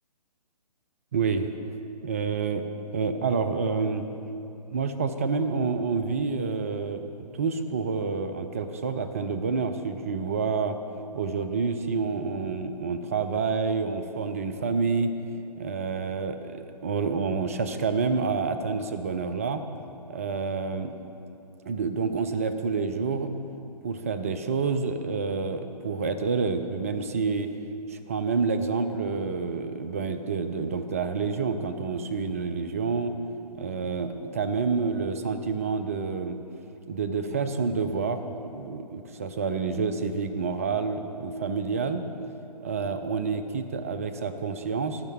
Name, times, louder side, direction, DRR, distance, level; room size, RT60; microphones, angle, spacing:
voice 1, 1.1-1.5 2.0-2.6 2.9-4.0 4.7-7.1 7.3-10.8 11.1-15.1 15.6-19.6 20.1-20.9 21.7-23.3 23.8-27.5 27.9-33.2 33.5-36.4 36.9-42.0 42.6-45.0, right 5 dB, 20° right, 9 dB, 0.3 m, -28 dB
11.5 x 4.4 x 7.8 m, 2.9 s
figure-of-eight pair, 135°, 21 cm